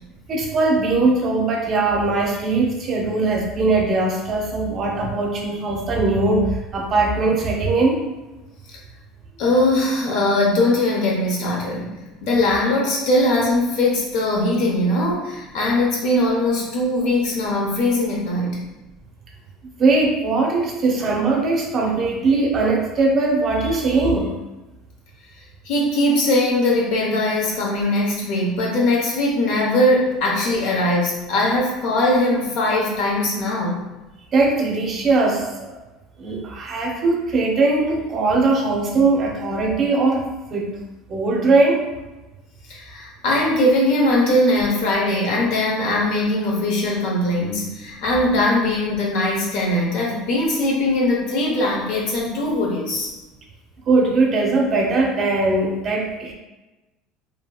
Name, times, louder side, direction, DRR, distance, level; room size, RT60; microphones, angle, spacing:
voice 1, 0.3-8.0 19.8-24.3 34.3-35.7 36.2-40.2 40.5-40.7 41.1-41.8 53.9-56.3, right 3 dB, 35° right, 0 dB, 0.5 m, -20 dB
voice 2, 9.4-18.6 25.6-33.8 42.7-53.1, left 1 dB, 70° left, -3 dB, 0.9 m, -20 dB
2.8 x 2.7 x 2.3 m, 1.1 s
supercardioid pair, 130°, 0 cm